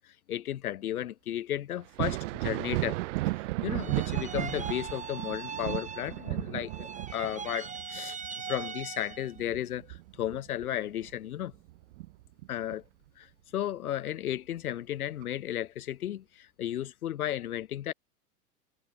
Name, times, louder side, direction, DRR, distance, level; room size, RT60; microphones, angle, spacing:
voice 1, 0.3-3.0 3.6-8.2 8.5-9.9 10.2-11.5 12.5-12.8 13.2-13.3 13.5-17.9, left 11 dB, 65° left, 1.9 m, -34 dB
Thunder, 1.8-11.1 11.5-12.7 14.3-14.4 15.2-15.3, right 20 dB, 50° right, 1.1 m, -35 dB
sound 1, 3.8-6.4 6.7-9.4, right 5 dB, 15° right, 4.7 m, -40 dB
figure-of-eight pair, 95°, 47 cm